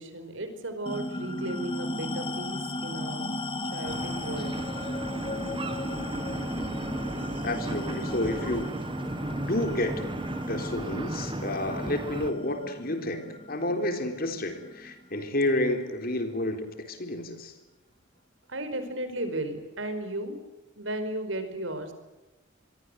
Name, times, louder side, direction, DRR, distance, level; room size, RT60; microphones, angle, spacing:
voice 1, 0.0-3.3 3.7-4.5 18.5-20.3 20.8-21.9, right 1 dB, 70° right, 9 dB, 4.9 m, -35 dB
sound 1, 0.9-15.7, left 1 dB, 25° left, 2.0 m, -36 dB
sound 2, 3.8-12.3, right 1 dB, 25° right, 1.3 m, -35 dB
voice 2, 7.4-8.8 9.3-10.0 10.5-17.5, left 1 dB, 45° left, 6 dB, 3.7 m, -30 dB
26.5 x 23.0 x 8.1 m, 1.1 s
head